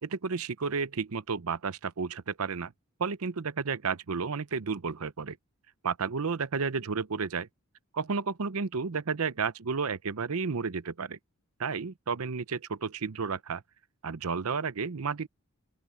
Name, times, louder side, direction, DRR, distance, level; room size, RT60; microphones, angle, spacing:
voice 1, 0.0-2.7 3.0-5.4 5.8-7.5 7.9-11.2 11.6-13.6 14.0-15.3, right 5 dB, 75° right, 0.7 m, -32 dB
open air
head